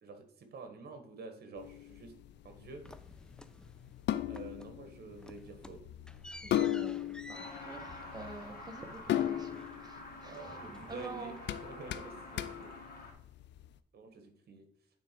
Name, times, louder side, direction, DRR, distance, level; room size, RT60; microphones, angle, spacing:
voice 1, 0.0-2.1 2.4-2.8 4.2-5.9 10.2-12.7 13.9-14.7, right 3 dB, 65° right, 6 dB, 1.5 m, -48 dB
sound 1, 1.6-13.7, left 12 dB, 85° left, 0.4 m, -38 dB
sound 2, 2.8-4.0 4.3-4.8 5.1-10.1 10.3-11.6, left 1 dB, 5° left, 0.4 m, -53 dB
voice 2, 6.4-10.6 10.9-11.4 12.3-12.6, right 3 dB, 20° right, 4 dB, 1.3 m, -48 dB
Truck, 7.3-13.1, left 2 dB, 60° left, 2.3 m, -48 dB
9.0 x 3.7 x 4.5 m, 0.70 s
cardioid pair, 115°, 18 cm